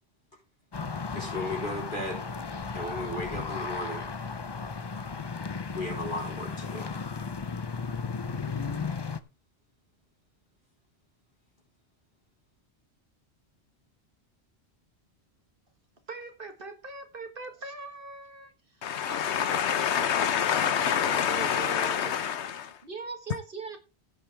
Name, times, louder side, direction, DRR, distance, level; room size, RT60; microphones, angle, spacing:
sound 1, 0.7-9.2, left 5 dB, 30° left, 0.5 m, -35 dB
voice 1, 1.1-2.3 2.7-4.1 5.7-7.0, left 1 dB, 50° left, 4.4 m, -35 dB
voice 2, 16.1-19.6 20.0-22.1 22.8-23.8, right 4 dB, 55° right, 1.9 m, -42 dB
voice 3, 18.8-22.8, left 8 dB, 90° left, 1.1 m, -27 dB
16.0 x 7.4 x 3.4 m
omnidirectional pair, 1.1 m